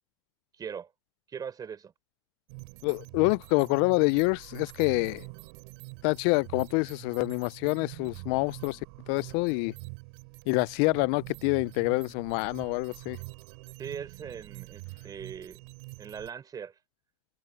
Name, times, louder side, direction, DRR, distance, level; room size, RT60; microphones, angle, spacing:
voice 1, 0.6-0.9 1.3-1.9 13.8-15.6 16.0-16.8, right 7 dB, 25° right, 4.3 m, -40 dB
sound 1, 2.5-16.3, right 34 dB, 60° right, 4.7 m, -45 dB
voice 2, 2.8-5.3 6.0-8.8 9.1-9.7 10.5-13.2, left 30 dB, 50° left, 0.4 m, -27 dB
hypercardioid pair, 115°, 16 cm